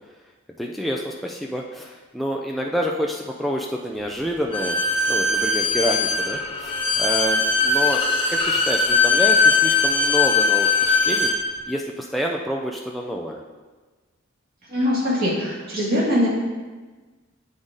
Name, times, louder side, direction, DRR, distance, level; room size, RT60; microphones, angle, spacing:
voice 1, 0.6-4.8 5.1-11.3 11.7-13.4, equal, ahead, -1 dB, 0.3 m, -28 dB
Bowed string instrument, 4.5-11.4, left 4 dB, 25° left, 0.7 m, -20 dB
voice 2, 14.7-16.3, left 1 dB, 45° right, -7 dB, 2.1 m, -22 dB
7.9 x 3.9 x 3.7 m, 1.3 s
head